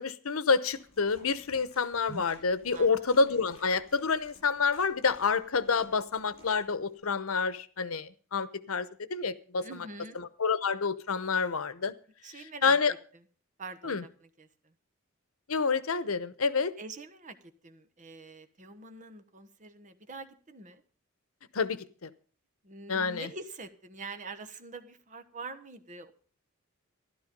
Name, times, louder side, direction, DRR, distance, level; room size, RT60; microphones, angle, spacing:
voice 1, 0.0-9.7 10.1-11.9 12.6-12.9 13.8-14.0 15.5-16.7 21.5-22.1 22.9-23.3, left 5 dB, 90° left, 0.9 m, -28 dB
sound 1, 0.7-7.0, equal, 30° left, 7.0 m, -54 dB
voice 2, 2.7-3.1 9.6-10.2 12.2-12.8 13.6-14.7 16.8-20.8 22.6-26.1, right 3 dB, 40° right, 1.2 m, -45 dB
14.0 x 12.0 x 5.3 m
head